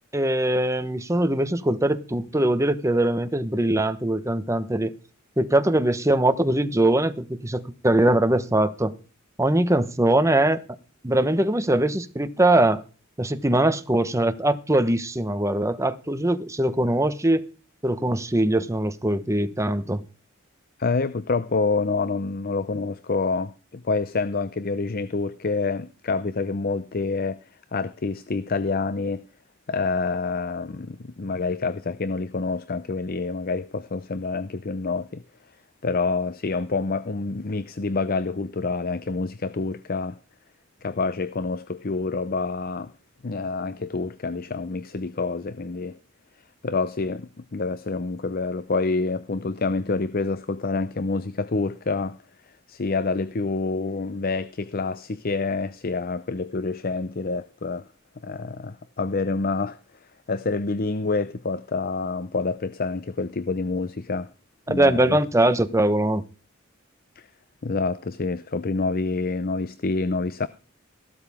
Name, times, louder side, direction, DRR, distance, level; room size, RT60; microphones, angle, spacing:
voice 1, 0.1-4.9 5.4-9.0 9.4-10.6 11.0-12.8 13.2-17.4 17.8-20.0 64.7-66.2, right 1 dB, 15° right, 1.0 m, -22 dB
voice 2, 20.8-27.4 27.7-29.2 29.7-35.2 35.8-40.2 40.8-42.9 43.2-46.0 46.6-52.2 52.7-57.9 58.2-59.8 60.3-64.3 64.7-65.2 67.2-67.3 67.6-70.5, left 3 dB, 45° left, 0.6 m, -27 dB
15.5 x 12.5 x 3.6 m
head